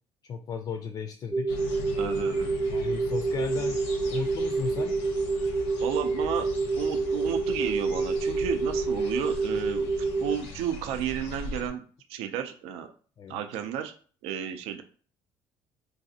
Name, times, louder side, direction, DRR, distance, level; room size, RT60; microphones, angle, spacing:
voice 1, 0.3-1.6 2.7-3.8 4.1-4.9 13.2-13.4, left 6 dB, 45° left, 7 dB, 0.4 m, -35 dB
sound 1, 1.3-10.4, right 3 dB, 15° right, 0.5 m, -28 dB
sound 2, 1.5-11.7, left 2 dB, 90° left, 0.7 m, -41 dB
voice 2, 2.0-2.5 5.8-6.5 6.8-9.9 10.2-11.8 12.1-12.9 13.3-13.9 14.2-14.8, right 9 dB, 80° right, 8 dB, 0.4 m, -32 dB
3.9 x 2.4 x 2.6 m, 0.42 s
supercardioid pair, 85°, 10 cm